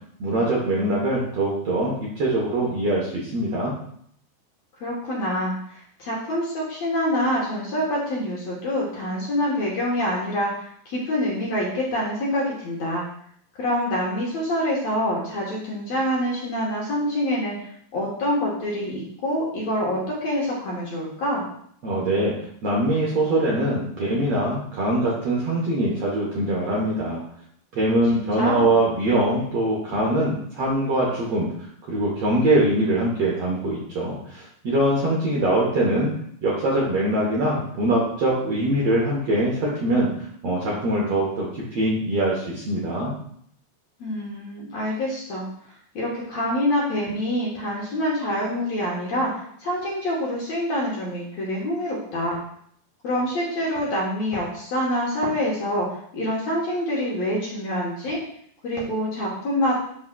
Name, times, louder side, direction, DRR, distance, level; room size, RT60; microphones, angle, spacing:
voice 1, 0.2-3.7 21.8-22.3 22.6-27.2 27.7-31.5 31.9-36.1 36.4-40.1 40.4-43.1, right 1 dB, 65° right, -4 dB, 1.6 m, -23 dB
voice 2, 4.8-13.1 13.6-17.6 17.9-21.5 28.1-28.8 44.0-45.5 46.0-52.4 53.0-55.9 56.1-58.2 58.6-59.8, equal, 60° left, -4 dB, 2.0 m, -26 dB
11.0 x 3.8 x 2.3 m, 0.66 s
omnidirectional pair, 4.2 m